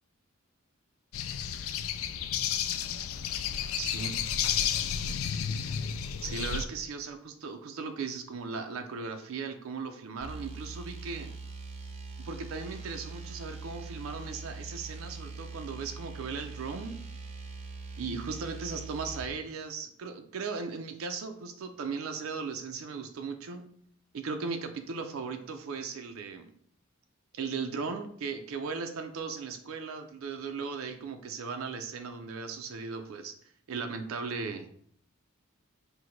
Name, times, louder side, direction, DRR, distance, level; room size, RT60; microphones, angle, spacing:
sound 1, 1.1-6.6, left 8 dB, 80° left, 0.3 m, -32 dB
voice 1, 3.8-4.2 6.2-11.3 12.2-17.0 18.0-23.7 24.1-26.5 27.3-33.3 33.7-34.7, right 5 dB, 85° right, 6 dB, 0.4 m, -37 dB
sound 2, 10.2-19.3, right 3 dB, 35° right, 0.5 m, -42 dB
4.5 x 2.1 x 3.8 m, 0.63 s
head